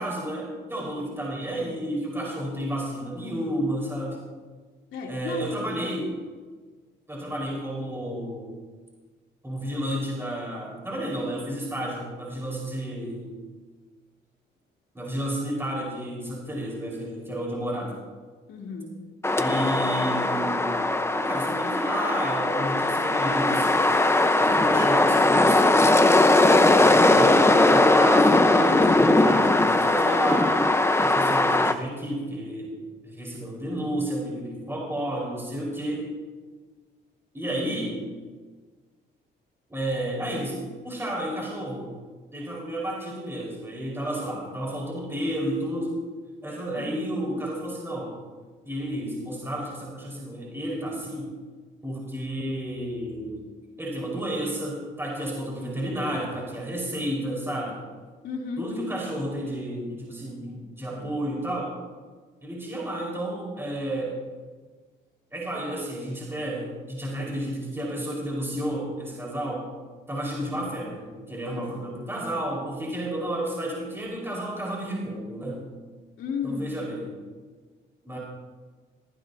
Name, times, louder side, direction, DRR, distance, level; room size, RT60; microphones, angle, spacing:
voice 1, 0.0-4.2 5.1-6.1 7.1-8.5 9.4-13.3 14.9-18.0 19.4-20.8 21.1-23.9 24.4-26.0 26.8-30.7 31.0-32.7 33.0-36.1 37.3-38.0 39.7-40.6 40.8-41.9 42.3-45.9 46.4-48.2 48.6-51.3 51.8-53.4 53.8-57.8 58.6-61.8 62.4-64.2 65.3-69.7 70.1-75.6 76.4-77.1 78.0-78.2, right 1 dB, 10° right, -4 dB, 4.8 m, -31 dB
voice 2, 4.9-5.9 18.5-18.9 26.4-26.8 46.8-47.3 58.2-58.6 76.2-76.6, left 5 dB, 75° left, -2 dB, 3.2 m, -34 dB
sound 1, 19.2-31.7, left 2 dB, 15° left, 0.9 m, -20 dB
18.5 x 15.5 x 2.8 m, 1.4 s
cardioid pair, 90°, 20 cm